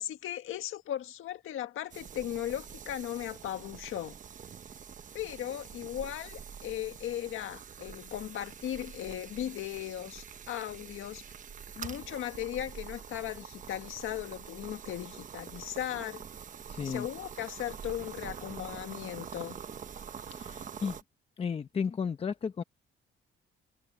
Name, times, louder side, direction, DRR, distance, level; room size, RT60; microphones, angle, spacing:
voice 1, 0.0-4.2 5.1-11.3 11.7-16.3 16.8-19.6, left 12 dB, 75° left, 1.8 m, -37 dB
Coffee Moka, 1.9-21.0, right 7 dB, 40° right, 1.1 m, -45 dB
voice 2, 16.7-17.1 20.3-21.0 21.4-22.6, left 6 dB, 30° left, 0.8 m, -34 dB
cardioid pair, 160°, 21 cm